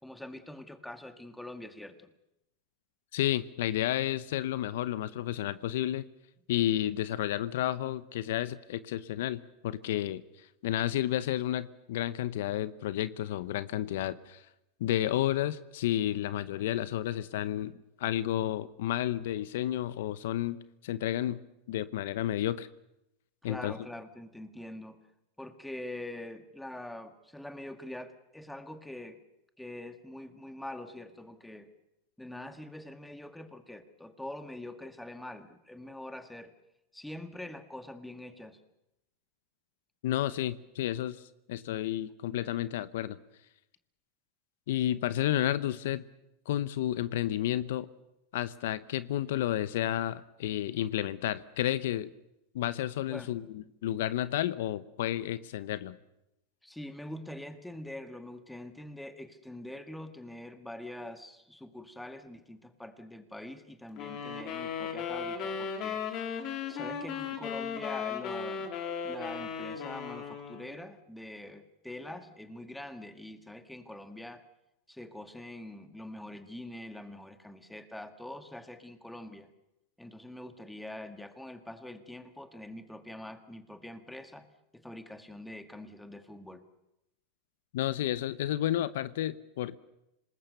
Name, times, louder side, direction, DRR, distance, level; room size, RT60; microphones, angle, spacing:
voice 1, 0.0-2.1 23.4-25.0 25.4-29.2 29.6-31.7 32.2-36.5 36.9-38.6 53.1-53.3 56.6-66.0 66.7-68.7 69.0-74.4 74.9-79.5 80.0-84.5 84.7-86.6, left 1 dB, 5° left, 8 dB, 1.9 m, -44 dB
voice 2, 3.1-6.1 6.5-10.2 10.6-14.5 14.8-17.7 18.0-20.6 20.8-21.4 21.7-22.7 23.4-23.7 40.0-41.2 41.5-43.2 44.7-46.1 46.5-47.9 48.3-52.1 52.5-56.0 87.7-89.8, left 12 dB, 75° left, 15 dB, 0.9 m, -31 dB
sound 1, 64.0-70.8, left 6 dB, 45° left, 3.6 m, -36 dB
26.5 x 20.0 x 6.8 m, 0.87 s
supercardioid pair, 120°, 0 cm